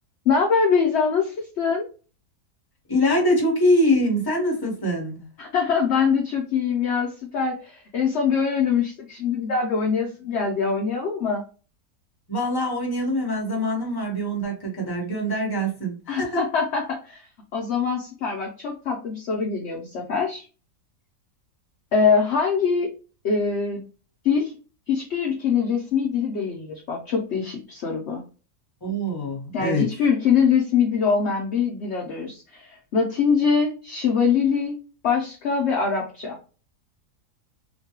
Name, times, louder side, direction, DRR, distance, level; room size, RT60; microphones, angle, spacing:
voice 1, 0.3-1.9 5.4-11.4 16.1-17.2 17.5-20.5 21.9-22.9 23.2-23.8 24.2-24.5 24.9-28.2 29.5-34.8 35.0-36.4, left 6 dB, 65° left, 0 dB, 0.7 m, -23 dB
voice 2, 2.9-5.2 12.3-16.4 28.8-29.9, equal, 15° left, -1 dB, 0.9 m, -24 dB
3.1 x 2.2 x 2.8 m, 0.35 s
omnidirectional pair, 1.7 m